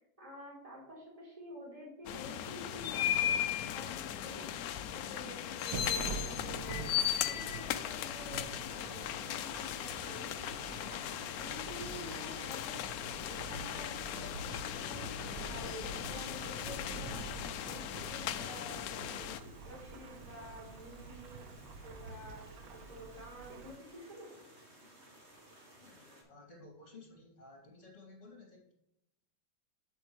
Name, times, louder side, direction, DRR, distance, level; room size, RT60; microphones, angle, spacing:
voice 1, 0.0-4.5 4.9-10.7 11.4-12.8 13.2-15.0 15.4-17.3 17.6-21.5 21.8-24.3, equal, 15° right, -4 dB, 3.4 m, -49 dB
sound 1, 2.1-19.4, left 10 dB, 85° left, 0.8 m, -37 dB
Thunderstorm / Rain, 5.7-23.8, right 3 dB, 60° right, 1.1 m, -47 dB
sound 2, 8.6-26.2, right 1 dB, 35° right, 2.2 m, -58 dB
voice 2, 25.8-28.7, left 2 dB, 40° left, -1 dB, 3.0 m, -55 dB
7.9 x 7.8 x 3.1 m, 0.85 s
omnidirectional pair, 2.1 m